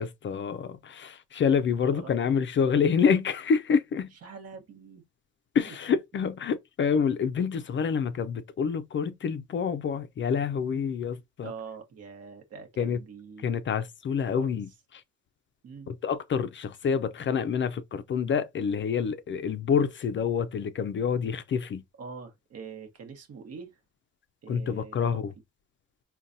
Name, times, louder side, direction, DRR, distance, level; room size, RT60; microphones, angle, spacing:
voice 1, 0.0-4.1 5.5-11.5 12.8-13.0 13.4-15.0 15.9-21.8 24.5-25.3, left 6 dB, 40° left, 0.4 m, -27 dB
voice 2, 4.1-5.0 5.7-5.8 11.4-13.5 14.3-14.5 15.6-15.9 21.9-23.7 24.4-25.2, right 5 dB, 55° right, 1.0 m, -44 dB
3.8 x 2.2 x 2.5 m
cardioid pair, 90°, 30 cm